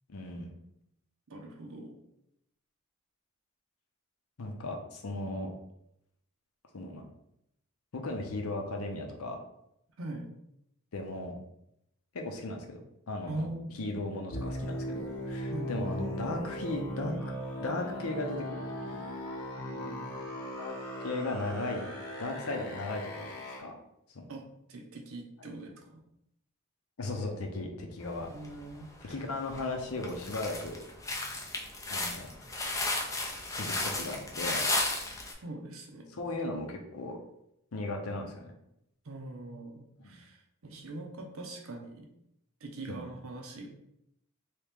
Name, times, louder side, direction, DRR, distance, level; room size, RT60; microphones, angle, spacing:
voice 1, 0.1-0.5 4.4-5.5 6.7-7.1 7.9-9.4 10.9-11.4 12.1-12.8 13.1-13.5 13.8-17.2 17.6-19.0 20.5-20.7 21.0-21.9 22.2-23.7 24.1-24.3 27.0-28.3 29.0-30.8 31.9-32.3 33.5-34.7 36.2-37.2 37.7-38.5 40.0-40.2 42.9-43.0, left 2 dB, 80° left, 3 dB, 0.7 m, -36 dB
voice 2, 1.3-2.0 10.0-10.3 13.3-13.6 15.5-15.9 19.6-20.3 24.3-24.4 24.7-26.0 28.3-29.2 35.4-36.2 39.0-42.1 42.6-43.7, right 2 dB, 70° right, 2 dB, 0.7 m, -42 dB
sound 1, 14.3-23.6, equal, 45° left, 0.8 m, -38 dB
sound 2, 28.4-29.0 29.5-29.6 30.0-35.3, left 2 dB, 15° left, 0.4 m, -33 dB
3.0 x 2.9 x 3.5 m, 0.79 s
head